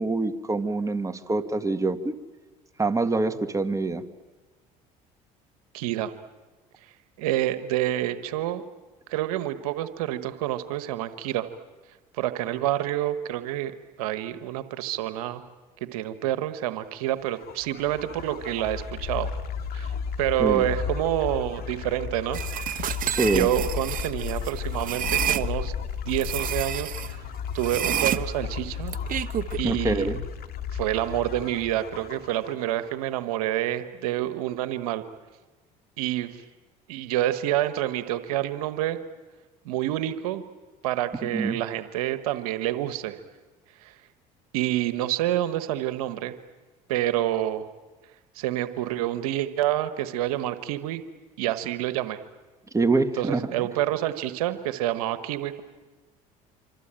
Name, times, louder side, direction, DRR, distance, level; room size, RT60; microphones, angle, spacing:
voice 1, 0.0-2.2 2.8-4.0 20.4-20.7 23.1-23.5 29.6-30.2 41.2-41.6 52.7-53.7, right 3 dB, 15° right, 8 dB, 1.8 m, -25 dB
voice 2, 5.7-6.1 7.2-8.6 9.1-11.5 12.1-15.4 15.8-19.3 19.7-22.4 23.3-25.7 26.1-27.2 27.5-28.9 29.6-30.1 30.7-35.0 36.0-36.4 36.9-39.0 39.6-40.4 40.8-43.2 43.8-43.9 44.5-46.3 46.9-47.7 48.3-51.0 51.4-52.2 53.2-55.6, right 13 dB, 90° right, 11 dB, 1.3 m, -28 dB
sound 1, 17.2-32.9, left 7 dB, 55° left, 2.2 m, -34 dB
sound 2, 22.3-25.4 26.2-27.1 27.6-29.6, right 11 dB, 50° right, 1.1 m, -29 dB
26.0 x 25.5 x 8.9 m, 1.3 s
supercardioid pair, 80°, 18 cm